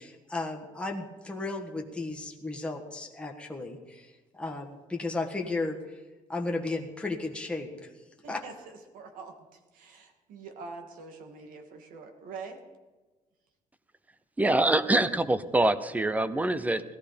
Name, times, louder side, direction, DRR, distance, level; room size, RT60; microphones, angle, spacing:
voice 1, 0.0-6.0 6.3-7.9 8.3-8.4, left 2 dB, 10° left, 1 dB, 1.4 m, -34 dB
voice 2, 8.2-12.6, right 4 dB, 85° right, 5 dB, 2.4 m, -45 dB
voice 3, 14.4-16.8, right 2 dB, 10° right, 14 dB, 0.7 m, -25 dB
17.5 x 14.5 x 5.2 m, 1.2 s
cardioid pair, 150°, 14 cm